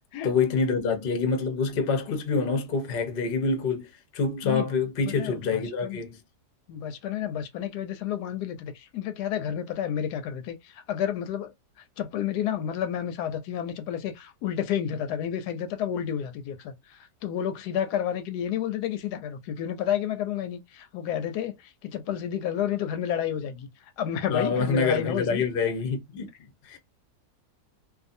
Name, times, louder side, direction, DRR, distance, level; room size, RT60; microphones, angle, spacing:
voice 1, 0.2-6.2 24.3-26.3 26.6-26.8, left 4 dB, 50° left, 0.7 m, -26 dB
voice 2, 5.0-6.0 6.7-11.5 12.0-23.7 24.0-25.4, left 9 dB, 85° left, 1.2 m, -30 dB
2.6 x 2.4 x 2.6 m
omnidirectional pair, 1.7 m